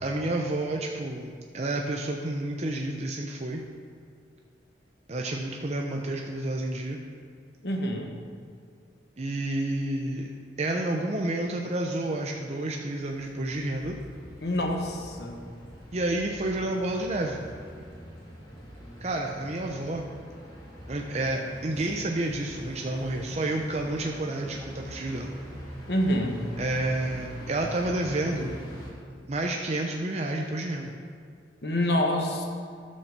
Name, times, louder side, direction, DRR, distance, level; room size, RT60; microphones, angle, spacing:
voice 1, 0.0-3.6 5.1-7.0 9.2-10.3 10.6-14.0 15.9-17.4 19.0-20.0 20.9-25.3 26.6-28.6 29.3-30.9, right 1 dB, 35° right, 1 dB, 0.6 m, -30 dB
voice 2, 7.6-8.2 14.4-15.4 25.9-26.4 31.6-32.4, left 1 dB, 60° left, 2 dB, 1.3 m, -27 dB
sound 1, 13.1-28.9, equal, 25° left, 2.8 m, -43 dB
12.0 x 5.5 x 6.7 m, 2.1 s
head